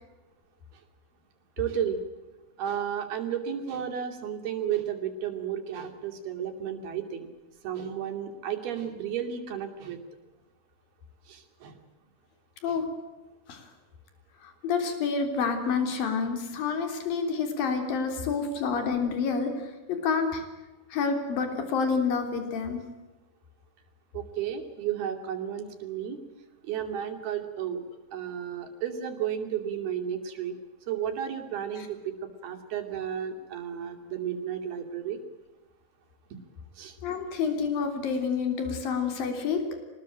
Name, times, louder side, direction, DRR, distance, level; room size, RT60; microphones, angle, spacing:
voice 1, 1.6-2.0 2.6-7.3 7.6-10.0 11.3-11.8 12.7-12.8 24.1-26.2 26.6-27.8 28.1-30.6 30.9-35.2 36.8-37.0, right 9 dB, 80° right, 4 dB, 4.6 m, -33 dB
voice 2, 14.4-20.4 20.9-22.8 37.0-39.8, left 5 dB, 65° left, 6 dB, 5.1 m, -28 dB
26.5 x 20.0 x 8.9 m, 1.1 s
omnidirectional pair, 4.4 m